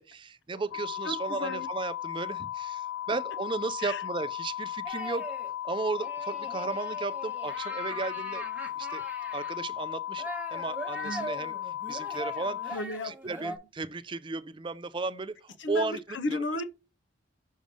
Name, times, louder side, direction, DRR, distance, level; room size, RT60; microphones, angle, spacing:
voice 1, 0.0-5.3 5.6-8.5 8.8-9.0 9.3-11.5 11.9-12.8 13.0-16.0 16.3-16.4, right 4 dB, 25° right, 0.4 m, -35 dB
sound 1, 0.7-12.8, left 12 dB, 80° left, 0.3 m, -36 dB
voice 2, 1.0-1.7 3.8-4.0 11.0-11.3 12.7-13.1 13.4-13.6 15.6-16.6, left 2 dB, 65° left, 0.8 m, -34 dB
sound 2, 4.8-5.5 6.0-9.5 10.2-13.6, right 1 dB, 10° right, 1.0 m, -41 dB
6.3 x 3.2 x 5.2 m
head